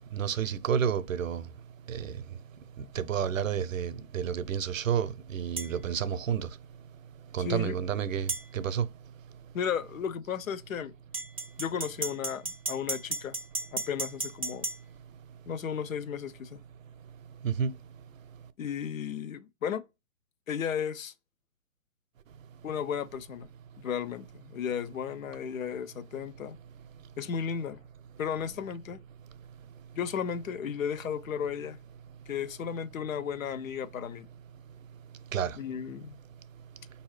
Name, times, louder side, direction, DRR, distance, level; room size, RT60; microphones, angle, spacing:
voice 1, 0.1-1.4 1.9-2.1 3.0-6.5 7.3-8.8 17.4-17.7 35.3-35.6, right 8 dB, 70° right, 0.6 m, -30 dB
sound 1, 5.6-5.7 8.3-8.4 11.1-14.8, right 3 dB, 25° right, 0.4 m, -34 dB
voice 2, 7.4-7.8 9.5-10.9 11.6-13.4 13.7-14.7 15.5-16.6 18.6-19.8 20.5-21.1 22.6-23.5 23.8-26.6 27.2-27.8 28.2-29.0 30.0-31.8 32.3-34.3 35.6-36.2, left 7 dB, 75° left, 0.6 m, -34 dB
4.7 x 2.7 x 3.1 m
hypercardioid pair, 165°, 41 cm